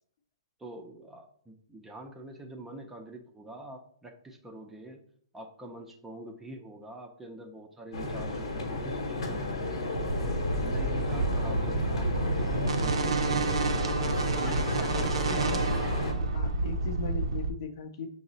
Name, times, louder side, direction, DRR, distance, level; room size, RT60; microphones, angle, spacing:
voice 1, 0.6-5.0 5.3-9.8 10.2-13.8 14.4-15.9, right 1 dB, 10° right, 2 dB, 0.5 m, -45 dB
sound 1, 7.9-16.1, left 2 dB, 75° left, 0.9 m, -32 dB
sound 2, 9.9-17.5, right 3 dB, 80° right, 0.5 m, -29 dB
voice 2, 15.0-15.6 16.2-18.1, left 5 dB, 55° left, 7 dB, 0.6 m, -39 dB
5.9 x 2.0 x 3.9 m, 0.62 s
hypercardioid pair, 145°, 3 cm